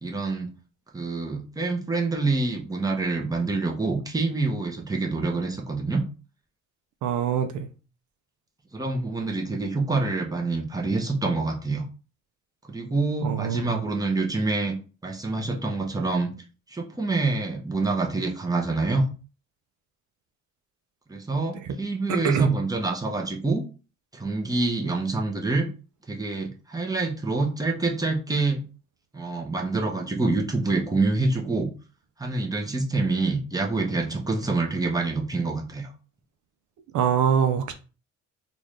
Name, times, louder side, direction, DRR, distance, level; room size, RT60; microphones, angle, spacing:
voice 1, 0.0-0.5 0.9-6.0 8.7-11.8 12.7-14.7 15.0-16.3 16.7-19.1 21.1-23.6 24.1-25.7 26.1-28.6 29.1-31.7 32.2-35.9, right 3 dB, 10° right, 0.9 m, -26 dB
voice 2, 7.0-7.7 13.2-13.9 22.1-22.5 36.9-37.7, right 7 dB, 75° right, 0.5 m, -24 dB
3.9 x 2.5 x 3.2 m
cardioid pair, 90°, 30 cm